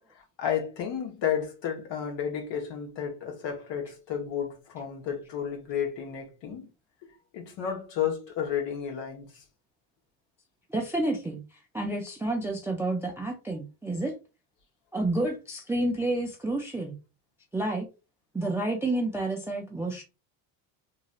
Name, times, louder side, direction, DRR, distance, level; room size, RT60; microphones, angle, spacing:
voice 1, 0.4-6.7 7.3-9.4, left 8 dB, 55° left, 1.2 m, -32 dB
voice 2, 10.7-11.4 11.7-14.1 14.9-16.9 17.5-17.9 18.3-20.0, right 2 dB, 5° right, 0.3 m, -29 dB
3.0 x 2.7 x 2.4 m
supercardioid pair, 105°, 50 cm